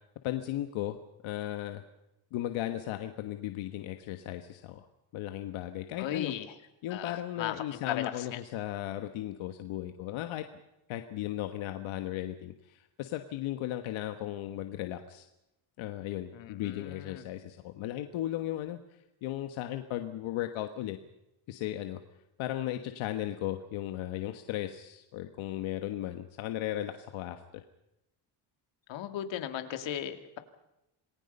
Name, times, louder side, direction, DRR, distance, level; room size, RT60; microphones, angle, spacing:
voice 1, 0.2-1.0 1.2-1.8 2.3-4.9 5.1-6.3 6.8-10.5 10.9-15.3 15.8-18.8 19.2-21.0 21.5-22.0 22.4-27.6, left 13 dB, 90° left, 7 dB, 1.5 m, -36 dB
voice 2, 6.0-6.5 6.9-8.4 16.3-17.2 28.9-30.4, left 10 dB, 70° left, 7 dB, 2.4 m, -37 dB
27.5 x 20.0 x 5.5 m, 0.89 s
cardioid pair, 140°, 47 cm